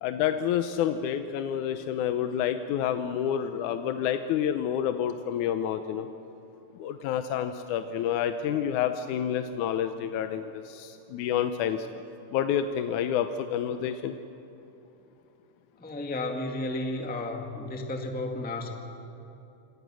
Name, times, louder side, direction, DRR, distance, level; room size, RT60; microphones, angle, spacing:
voice 1, 0.0-6.1 6.8-11.8 12.3-14.1, left 9 dB, 85° left, 8 dB, 2.2 m, -28 dB
voice 2, 15.8-18.7, left 2 dB, 5° left, 3 dB, 1.2 m, -33 dB
27.0 x 26.0 x 6.3 m, 2.9 s
omnidirectional pair, 3.4 m